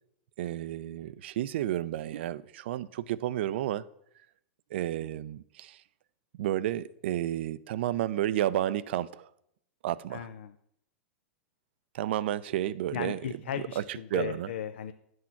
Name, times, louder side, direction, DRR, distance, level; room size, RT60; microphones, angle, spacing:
voice 1, 0.4-3.8 4.7-5.8 6.4-9.3 9.8-10.3 11.9-13.2 13.8-14.5, right 12 dB, 65° right, 0.5 m, -31 dB
voice 2, 10.1-10.6 12.9-14.9, left 9 dB, 75° left, 0.5 m, -36 dB
9.3 x 6.3 x 5.8 m
hypercardioid pair, 120°, 6 cm